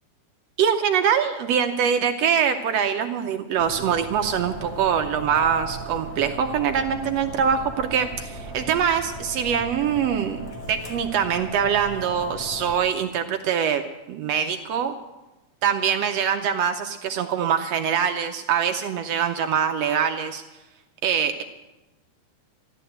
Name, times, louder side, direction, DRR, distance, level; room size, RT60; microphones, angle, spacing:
voice 1, 0.6-13.8 14.1-14.9 15.6-20.4 21.0-21.4, right 7 dB, 75° right, 6 dB, 1.6 m, -23 dB
sound 1, 3.6-12.8, right 1 dB, 30° left, 1.6 m, -37 dB
13.5 x 12.0 x 7.8 m, 1.1 s
omnidirectional pair, 3.5 m